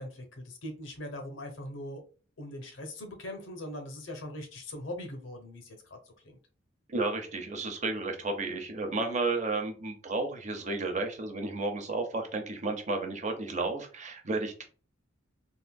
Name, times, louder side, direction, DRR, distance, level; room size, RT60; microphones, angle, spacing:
voice 1, 0.0-2.0 2.4-6.0 6.2-6.4, left 1 dB, 90° left, 5 dB, 0.9 m, -41 dB
voice 2, 6.9-14.6, right 3 dB, 40° right, 4 dB, 0.7 m, -32 dB
3.6 x 2.6 x 2.2 m, 0.37 s
head